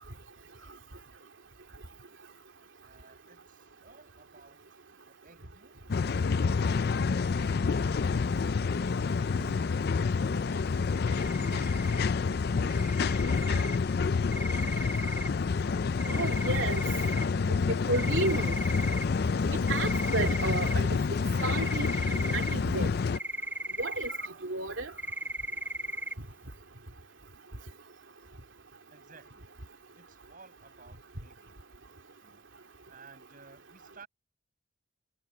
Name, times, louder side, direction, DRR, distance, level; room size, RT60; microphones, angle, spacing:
voice 1, 2.8-4.6 5.1-5.8 6.6-9.4 10.1-10.7 12.4-13.8 14.4-15.1 28.9-29.5 29.9-31.8 32.2-32.4 32.9-34.1, right 4 dB, 45° right, 6.8 m, -57 dB
sound 1, 5.9-23.2, left 5 dB, 55° left, 0.4 m, -28 dB
sound 2, 11.1-12.1 12.7-13.8 14.3-15.3 16.0-17.2 17.9-19.0 19.7-20.7 21.4-22.6 23.2-24.3 24.6-24.7 25.0-26.1, right 1 dB, 10° right, 0.8 m, -37 dB
voice 2, 16.1-16.8 17.9-18.5 19.5-21.0 21.4-22.9 23.8-24.2 24.4-24.9, right 2 dB, 75° right, 2.8 m, -32 dB
head